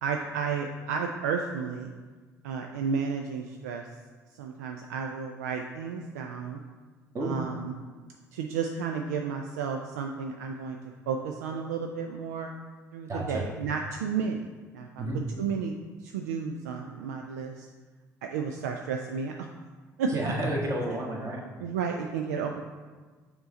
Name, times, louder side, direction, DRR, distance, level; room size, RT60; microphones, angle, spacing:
voice 1, 0.0-1.9 2.4-3.9 4.4-6.6 7.2-7.8 8.3-10.8 11.1-12.5 12.9-14.5 14.7-15.0 15.4-15.7 16.0-17.7 18.2-19.5 20.0-20.1 21.6-22.6, right 6 dB, 70° right, 3 dB, 0.4 m, -32 dB
voice 2, 13.1-13.5 15.0-15.2 20.1-21.4, right 1 dB, 30° right, -2 dB, 1.5 m, -30 dB
6.7 x 4.3 x 3.9 m, 1.4 s
figure-of-eight pair, 55°, 9 cm